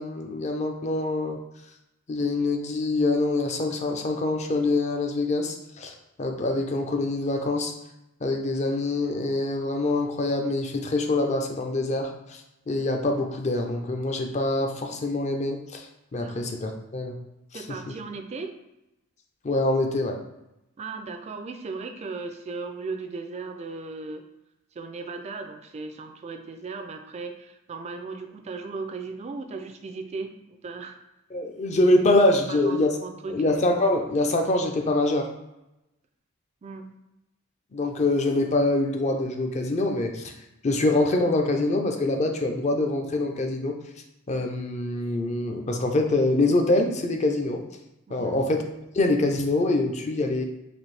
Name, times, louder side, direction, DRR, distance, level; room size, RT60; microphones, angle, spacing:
voice 1, 0.0-1.4 2.1-7.7 8.2-12.4 12.7-15.9 16.1-17.2 17.5-17.8 19.4-20.2 31.3-32.9 33.3-35.3 37.7-40.3 40.6-43.7 44.3-47.6 48.1-48.6 48.9-50.4, left 2 dB, 35° left, 3 dB, 0.5 m, -25 dB
voice 2, 17.5-18.5 20.8-24.2 24.8-31.0 32.5-33.4 36.6-36.9 48.1-48.5, right 4 dB, 30° right, 6 dB, 0.3 m, -36 dB
4.2 x 2.6 x 3.2 m, 0.91 s
head